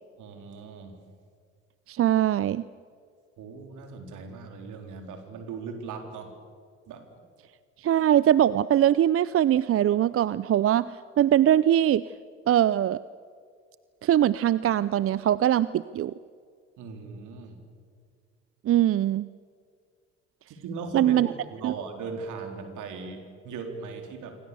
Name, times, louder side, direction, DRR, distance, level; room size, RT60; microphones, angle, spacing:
voice 1, 0.2-1.0 3.4-6.3 6.9-7.1 16.8-17.6 20.5-24.4, right 5 dB, 65° right, 5 dB, 4.2 m, -38 dB
voice 2, 1.9-2.6 7.8-10.9 11.2-12.0 12.5-13.0 14.0-16.1 18.6-19.3 20.9-21.3 21.6-21.7, right 11 dB, 45° right, 18 dB, 0.6 m, -22 dB
27.0 x 25.0 x 7.0 m, 2.1 s
hypercardioid pair, 55°, 32 cm